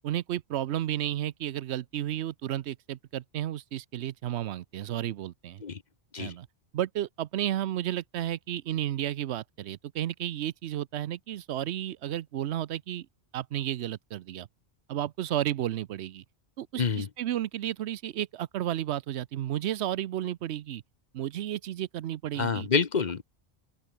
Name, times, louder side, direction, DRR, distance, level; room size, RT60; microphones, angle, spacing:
voice 1, 0.0-5.6 6.2-6.5 6.7-13.1 13.3-14.5 14.9-16.2 16.6-20.8 21.1-22.7, right 12 dB, 85° right, 0.9 m, -32 dB
voice 2, 22.4-23.2, left 5 dB, 45° left, 1.0 m, -27 dB
open air
omnidirectional pair, 1.1 m